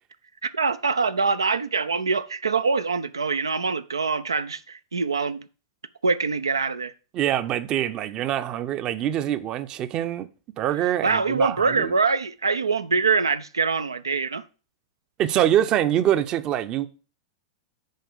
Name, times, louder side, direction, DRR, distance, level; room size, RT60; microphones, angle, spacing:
voice 1, 0.5-5.5 6.0-6.9 11.0-14.4, right 4 dB, 90° right, 0.5 m, -24 dB
voice 2, 7.1-10.3 10.6-11.9 15.2-16.9, right 11 dB, 35° right, 0.6 m, -24 dB
6.5 x 4.6 x 6.7 m
hypercardioid pair, 100°, 2 cm